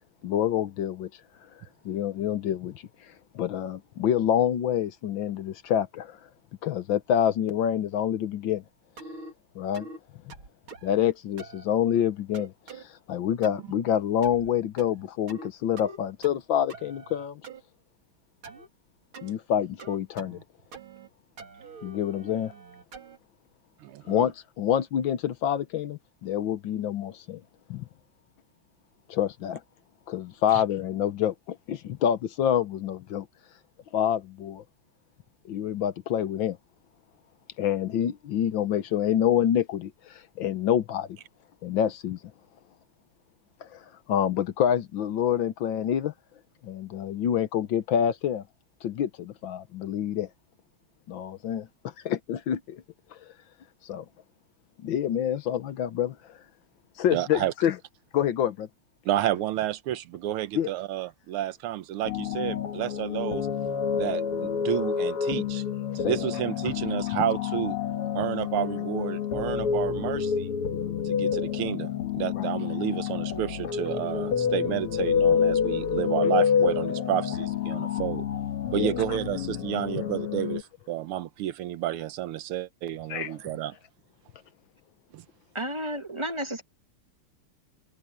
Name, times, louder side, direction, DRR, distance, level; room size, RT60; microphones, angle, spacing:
voice 1, 0.2-1.1 1.8-2.8 3.3-6.2 6.6-8.6 9.5-9.9 10.8-17.4 19.2-20.4 21.8-22.5 24.1-27.4 27.7-27.8 29.1-29.6 30.1-33.3 33.9-34.6 35.4-36.6 37.6-41.2 41.6-42.2 43.6-43.8 44.1-46.1 46.6-48.4 48.8-50.3 51.1-51.7 52.0-52.8 53.8-54.0 54.8-56.4 57.0-57.7 58.1-58.7 60.5-60.7 66.0-66.2 72.4-72.5 78.7-79.0 83.1-83.4, left 10 dB, 65° left, 1.6 m, -27 dB
sound 1, 9.0-9.3 9.7-10.0 10.3-10.9 11.4-11.6 12.3-12.8 13.4-13.7 14.2-14.5 14.8-15.5 15.8-16.4 16.7-17.6 18.4-18.7 19.1-19.3 19.8-20.4 20.7-21.1 21.4-23.2, right 3 dB, 70° right, 3.8 m, -44 dB
voice 2, 23.8-24.3 30.5-30.6 57.1-57.5 59.0-63.5 63.9-65.6 65.9-67.8 68.1-70.5 71.0-78.2 78.7-83.7 85.1-85.2, right 12 dB, 85° right, 1.7 m, -31 dB
sound 2, 62.0-80.6, left 7 dB, 85° left, 2.6 m, -28 dB
voice 3, 85.5-86.6, equal, 15° right, 1.1 m, -32 dB
omnidirectional pair, 2.4 m